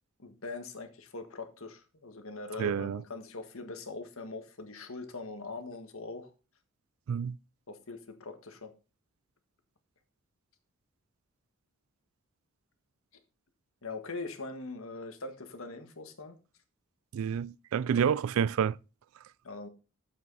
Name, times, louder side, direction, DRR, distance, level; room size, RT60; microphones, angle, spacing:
voice 1, 0.2-6.3 7.7-8.7 13.8-16.3 17.8-18.1 19.4-19.7, left 3 dB, 85° left, 1.6 m, -42 dB
voice 2, 2.6-3.0 7.1-7.4 17.1-18.8, right 7 dB, 85° right, 0.3 m, -29 dB
8.8 x 7.6 x 4.0 m
head